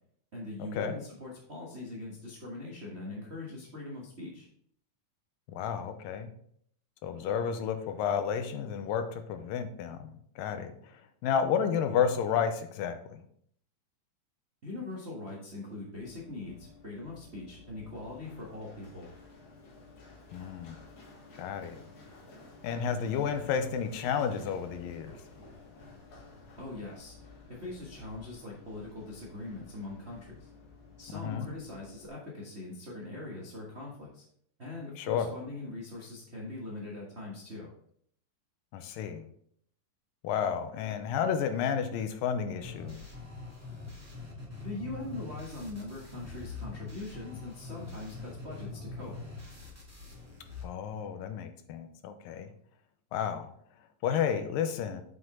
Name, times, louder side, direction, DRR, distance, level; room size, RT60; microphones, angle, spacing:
voice 1, 0.3-4.5 14.6-19.1 26.6-27.1 27.6-30.5 31.0-34.2 34.6-37.7 44.6-49.1, left 2 dB, 80° right, -4 dB, 0.5 m, -42 dB
voice 2, 5.5-6.3 7.0-10.7 11.2-13.2 20.3-20.8 21.4-21.8 22.6-25.1 31.1-31.5 35.0-35.3 38.7-39.2 40.2-43.0 50.6-52.5 53.1-53.5 54.0-55.0, left 7 dB, 85° left, 8 dB, 2.4 m, -31 dB
Run, 15.9-32.1, left 3 dB, 50° left, 1.8 m, -53 dB
sound 1, 42.6-50.6, left 3 dB, 10° right, 1.1 m, -43 dB
8.0 x 5.7 x 3.8 m, 0.64 s
omnidirectional pair, 4.0 m